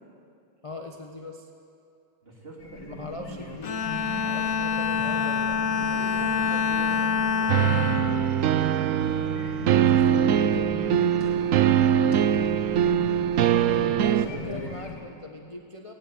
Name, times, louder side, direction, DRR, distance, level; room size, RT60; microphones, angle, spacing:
voice 1, 0.6-1.5 2.9-3.9 4.2-5.6 9.8-10.8 13.9-15.9, left 3 dB, 25° left, 2 dB, 0.8 m, -40 dB
voice 2, 2.2-3.6 4.1-4.4 5.6-8.9 11.1-13.7 14.1-14.9, right 1 dB, 30° right, -2 dB, 3.6 m, -44 dB
sound 1, 2.6-15.0, left 2 dB, 70° left, 3.5 m, -39 dB
Bowed string instrument, 3.6-9.1, left 6 dB, 55° left, 1.3 m, -27 dB
sound 2, 7.5-14.3, right 10 dB, 80° right, 0.7 m, -22 dB
18.5 x 17.0 x 8.6 m, 2.5 s
omnidirectional pair, 2.1 m